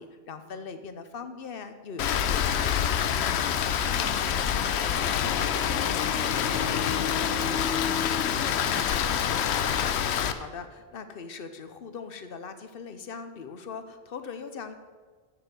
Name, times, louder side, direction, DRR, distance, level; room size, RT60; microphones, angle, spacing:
voice 1, 0.0-2.5 10.3-14.7, left 5 dB, 60° left, 9 dB, 1.0 m, -40 dB
Rain, 2.0-10.3, left 8 dB, 90° left, 0.9 m, -26 dB
voice 2, 3.1-9.4, equal, 15° right, -8 dB, 3.0 m, -43 dB
7.5 x 6.8 x 8.0 m, 1.5 s
omnidirectional pair, 1.1 m